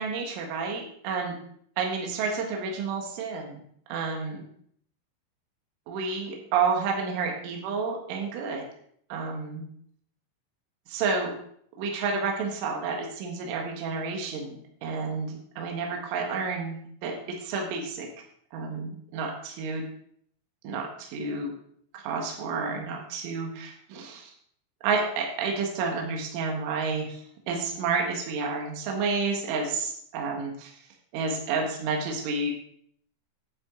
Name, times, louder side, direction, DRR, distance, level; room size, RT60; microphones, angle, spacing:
voice 1, 0.0-1.4 1.8-3.6 3.9-4.4 5.9-8.6 9.1-9.7 10.9-11.3 11.8-18.1 18.5-19.8 20.6-21.5 22.0-24.3 24.8-27.2 27.5-30.7 31.1-32.5, right 4 dB, 75° right, 1 dB, 3.9 m, -30 dB
11.0 x 8.7 x 3.8 m, 0.65 s
omnidirectional pair, 5.6 m